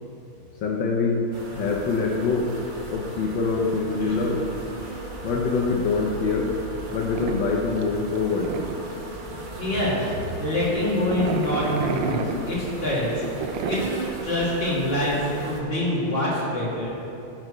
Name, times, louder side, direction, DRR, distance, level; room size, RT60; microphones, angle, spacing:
voice 1, 0.6-1.2 1.5-2.5 2.9-4.4 5.2-6.5 6.9-8.5, left 4 dB, 70° left, -1 dB, 1.5 m, -24 dB
sound 1, 1.3-15.6, right 2 dB, 40° right, 0.7 m, -37 dB
sound 2, 5.9-16.3, right 6 dB, 75° right, 1.2 m, -33 dB
voice 2, 9.2-10.1 10.4-16.9, left 1 dB, 30° left, -9 dB, 2.7 m, -26 dB
15.0 x 7.6 x 3.1 m, 2.8 s
omnidirectional pair, 2.2 m